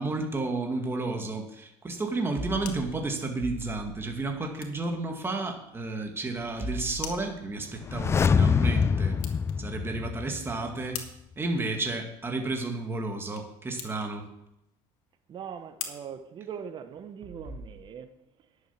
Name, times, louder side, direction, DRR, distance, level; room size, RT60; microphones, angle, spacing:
voice 1, 0.0-9.2 9.6-11.1 11.4-14.3, right 2 dB, 20° right, 2.1 m, -32 dB
sound 1, 2.5-17.1, left 9 dB, 80° left, 1.8 m, -47 dB
sound 2, 7.8-10.7 11.0-11.1, left 6 dB, 20° left, 0.3 m, -25 dB
voice 2, 15.3-18.6, right 7 dB, 40° right, 1.0 m, -41 dB
10.5 x 7.5 x 7.4 m
cardioid pair, 120°, 13 cm